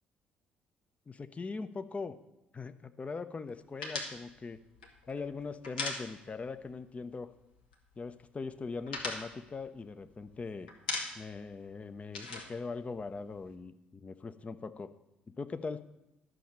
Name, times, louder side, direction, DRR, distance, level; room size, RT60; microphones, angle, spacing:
voice 1, 1.1-2.2 2.5-4.6 5.1-7.3 8.0-10.7 11.2-14.9 15.4-15.8, left 4 dB, 25° left, 11 dB, 0.7 m, -41 dB
sound 1, 3.8-6.6 6.9-7.0 7.3-8.0 8.4-10.3 10.7-11.4 11.7-13.5, left 3 dB, 75° left, 1.1 m, -39 dB
11.5 x 6.3 x 5.6 m, 0.93 s
figure-of-eight pair, 45°, 5 cm